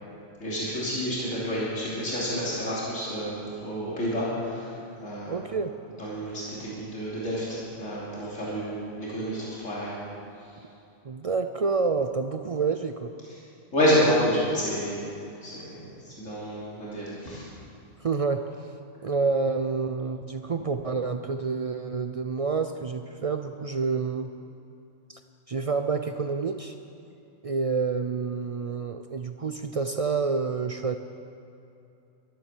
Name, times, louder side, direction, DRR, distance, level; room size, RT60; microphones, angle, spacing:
voice 1, 0.4-4.7 5.0-5.4 6.0-9.9 13.7-15.0 15.4-17.5, equal, 90° left, -8 dB, 3.5 m, -29 dB
voice 2, 5.3-5.8 11.0-13.1 18.0-18.5 19.0-24.3 25.1-25.2 25.5-26.8 27.4-31.0, right 4 dB, 60° right, 8 dB, 0.3 m, -28 dB
13.0 x 11.5 x 7.3 m, 2.7 s
omnidirectional pair, 1.3 m